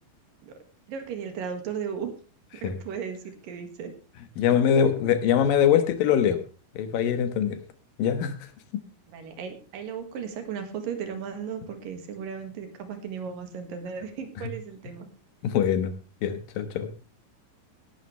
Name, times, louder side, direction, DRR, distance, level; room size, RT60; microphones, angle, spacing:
voice 1, 0.9-2.1 2.6-3.9 4.5-4.9 9.1-15.1, right 7 dB, 80° right, 6 dB, 3.6 m, -36 dB
voice 2, 4.4-6.4 6.8-7.6 8.0-8.4 8.7-8.8 15.4-15.9 16.2-16.9, left 8 dB, 80° left, 10 dB, 3.0 m, -23 dB
17.5 x 12.0 x 3.3 m, 0.34 s
omnidirectional pair, 4.0 m